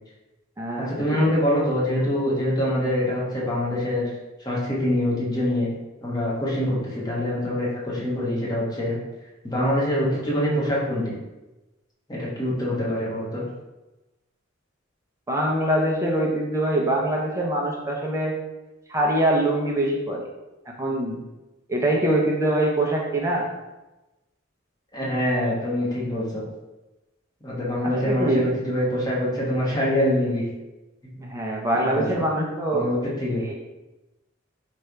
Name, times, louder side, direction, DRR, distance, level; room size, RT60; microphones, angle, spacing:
voice 1, 0.8-4.1 4.4-5.7 6.0-9.0 9.4-11.2 12.1-13.4 24.9-26.4 27.4-30.4 31.2-31.3 31.7-32.2 32.7-33.6, left 1 dB, 20° left, -6 dB, 1.1 m, -25 dB
voice 2, 15.3-18.3 18.9-20.3 20.7-21.2 21.7-23.5 27.8-28.4 31.2-32.9 33.4-33.6, right 1 dB, 15° right, -1 dB, 0.6 m, -24 dB
3.2 x 2.6 x 4.5 m, 1.0 s
head